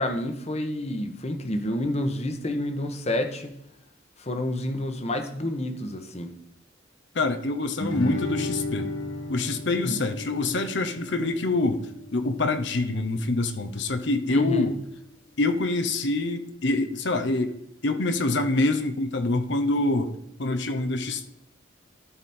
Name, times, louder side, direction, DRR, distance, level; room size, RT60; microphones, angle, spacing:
voice 1, 0.0-3.5 4.2-6.3 9.8-10.0 14.3-14.7, left 1 dB, 35° left, 7 dB, 1.1 m, -29 dB
voice 2, 7.1-8.9 9.3-11.8 12.1-14.8 15.4-20.1 20.4-21.3, left 2 dB, 60° left, 8 dB, 0.9 m, -26 dB
Guitar, 7.8-12.9, left 1 dB, 80° left, 1.8 m, -34 dB
13.0 x 5.0 x 4.3 m, 0.79 s
head